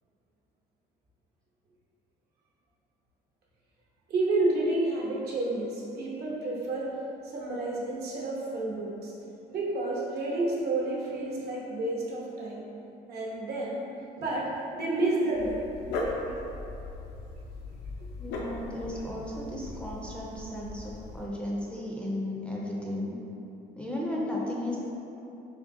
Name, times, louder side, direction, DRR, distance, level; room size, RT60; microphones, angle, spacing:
voice 1, 4.1-6.9 7.2-9.1 9.5-12.6 13.1-13.8 14.2-15.7 16.0-16.4 18.0-18.1, right 2 dB, 70° right, -4 dB, 0.8 m, -30 dB
Dog, 15.3-21.3, left 2 dB, 80° left, 0.5 m, -38 dB
voice 2, 18.2-23.1 23.8-24.8, left 1 dB, 5° left, -4 dB, 0.4 m, -34 dB
3.6 x 3.3 x 2.6 m, 2.9 s
cardioid pair, 110°, 17 cm